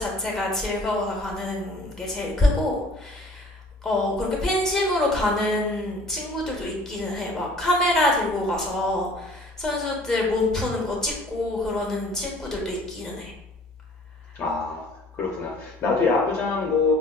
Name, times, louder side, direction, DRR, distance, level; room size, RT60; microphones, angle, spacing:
voice 1, 0.0-3.5 3.8-13.3, left 1 dB, 10° left, -1 dB, 1.0 m, -25 dB
voice 2, 14.4-14.9 15.1-16.9, left 4 dB, 40° left, -2 dB, 0.6 m, -24 dB
4.3 x 2.2 x 2.4 m, 0.91 s
supercardioid pair, 110°, 6 cm